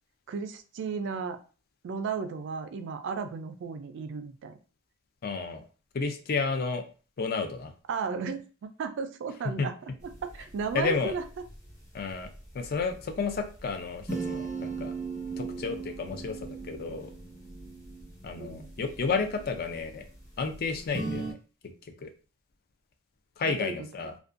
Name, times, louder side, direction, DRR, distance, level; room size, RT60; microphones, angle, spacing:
voice 1, 0.3-1.4 1.8-4.6 7.9-9.7 10.2-11.2 18.4-18.7 23.5-23.7 24.0-24.1, right 5 dB, 60° right, 8 dB, 0.3 m, -34 dB
voice 2, 5.2-5.6 5.9-6.9 7.2-7.7 9.6-9.7 10.7-11.1 11.9-14.9 15.4-17.1 18.2-20.1 20.4-21.4 21.6-21.7 22.0-22.1 23.4-24.1, left 4 dB, 45° left, 6 dB, 0.4 m, -31 dB
sound 1, 10.0-21.3, right 4 dB, 15° left, 1.0 m, -40 dB
2.5 x 2.2 x 2.4 m, 0.36 s
head